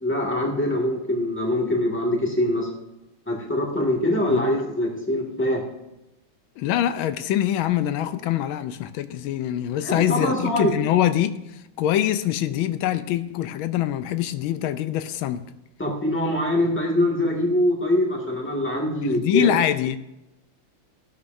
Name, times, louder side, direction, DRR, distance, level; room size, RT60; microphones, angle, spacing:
voice 1, 0.0-2.7 3.3-5.6 9.8-10.7 15.8-19.5, left 1 dB, 5° left, 1.8 m, -23 dB
voice 2, 4.3-4.6 6.6-15.5 19.0-20.0, left 11 dB, 90° left, 1.4 m, -24 dB
14.5 x 11.0 x 2.6 m
omnidirectional pair, 2.2 m